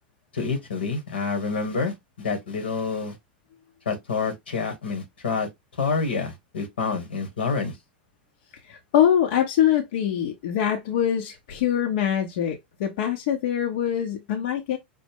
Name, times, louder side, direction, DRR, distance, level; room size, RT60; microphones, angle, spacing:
voice 1, 0.3-3.1 3.8-5.5 5.8-7.7, left 4 dB, 85° left, 1.5 m, -28 dB
voice 2, 8.6-14.8, left 10 dB, 65° left, 0.7 m, -24 dB
5.3 x 2.1 x 3.5 m
hypercardioid pair, 100°, 5 cm